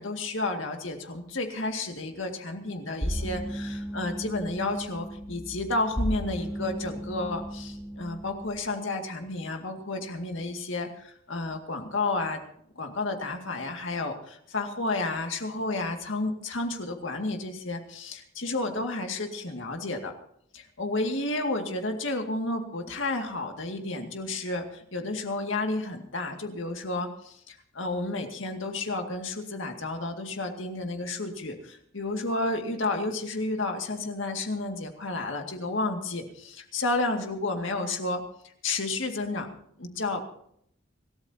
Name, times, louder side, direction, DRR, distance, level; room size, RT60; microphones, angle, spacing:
voice 1, 0.0-12.4 12.8-20.1 20.5-39.5 39.8-40.2, left 2 dB, 65° left, 4 dB, 2.2 m, -31 dB
sound 1, 3.0-8.7, equal, ahead, 2.0 m, -35 dB
26.5 x 13.5 x 2.8 m, 0.70 s
head